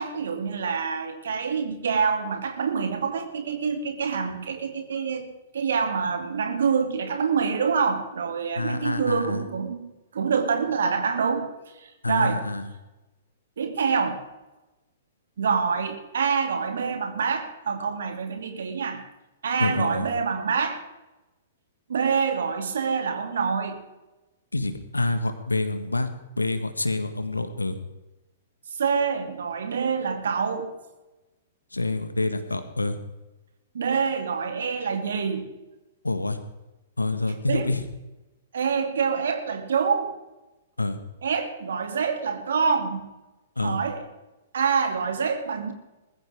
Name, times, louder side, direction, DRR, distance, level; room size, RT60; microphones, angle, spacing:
voice 1, 0.0-11.5 11.8-12.4 13.6-14.2 15.4-19.0 19.4-20.8 21.9-23.8 28.8-30.7 33.7-35.5 37.5-37.7 38.5-40.1 41.2-43.1 43.6-44.1 44.5-45.7, right 6 dB, 60° right, 5 dB, 2.7 m, -26 dB
voice 2, 8.6-9.4 12.0-12.7 19.6-20.0 24.5-26.1 26.4-27.7 31.7-33.0 36.0-36.4 37.0-37.8 40.8-41.0 43.6-43.8, left 2 dB, 80° left, 10 dB, 1.7 m, -27 dB
21.0 x 14.5 x 3.7 m, 1.0 s
figure-of-eight pair, 110°, 0 cm